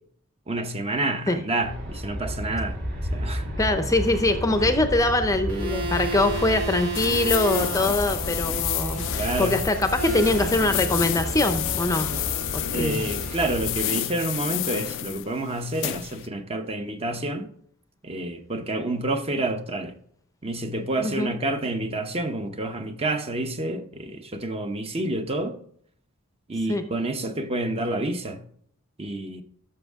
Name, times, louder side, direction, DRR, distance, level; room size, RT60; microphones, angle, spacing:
voice 1, 0.5-2.8 3.1-3.4 9.2-9.6 12.7-17.5 18.0-19.9 20.4-25.6 26.5-28.4 29.0-29.4, right 2 dB, 25° right, 0.8 m, -28 dB
Aircraft, 1.6-13.8, equal, 55° right, 2.0 m, -32 dB
voice 2, 3.6-12.1 12.5-13.0 21.0-21.3 26.7-26.8, left 2 dB, 15° left, 0.6 m, -23 dB
sound 1, 5.5-13.6, right 1 dB, 75° right, 2.4 m, -34 dB
sound 2, 6.9-16.3, left 14 dB, 55° left, 0.3 m, -30 dB
12.5 x 6.3 x 3.6 m
head